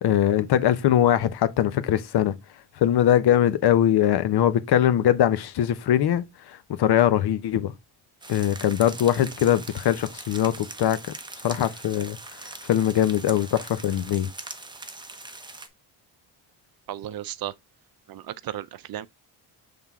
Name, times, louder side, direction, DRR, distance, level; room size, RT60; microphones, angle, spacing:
voice 1, 0.0-2.3 2.8-6.2 6.8-7.7 8.3-11.0 11.4-12.2 12.7-14.3, left 11 dB, 65° left, 0.9 m, -21 dB
sound 1, 8.2-15.7, right 2 dB, 10° right, 0.8 m, -41 dB
voice 2, 16.9-17.5 18.1-19.1, right 12 dB, 55° right, 0.5 m, -34 dB
7.4 x 3.8 x 3.5 m
cardioid pair, 135°, 42 cm